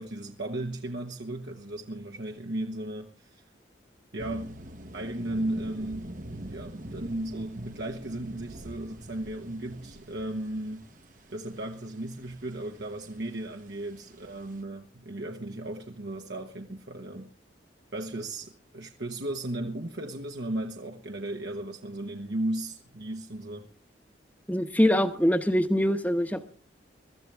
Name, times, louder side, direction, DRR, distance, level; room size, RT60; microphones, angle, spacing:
voice 1, 0.0-3.4 4.1-4.6 4.9-6.2 6.5-10.9 11.3-17.3 17.9-23.7, right 1 dB, 70° right, 1.3 m, -35 dB
sound 1, 4.2-14.6, right 1 dB, 45° right, 1.1 m, -45 dB
voice 2, 24.5-26.6, equal, 10° left, 1.0 m, -24 dB
22.5 x 13.5 x 3.5 m
head